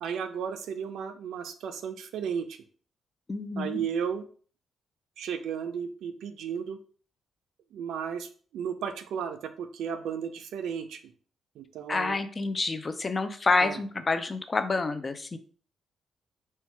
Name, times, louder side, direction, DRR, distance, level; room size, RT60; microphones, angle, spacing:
voice 1, 0.0-2.6 3.6-4.3 5.2-6.8 7.7-11.1 11.6-12.2 13.6-13.8, right 7 dB, 85° right, 8 dB, 0.5 m, -34 dB
voice 2, 3.3-3.8 11.9-15.4, left 3 dB, 20° left, 9 dB, 0.4 m, -28 dB
4.3 x 2.3 x 4.5 m, 0.43 s
cardioid pair, 170°, 0 cm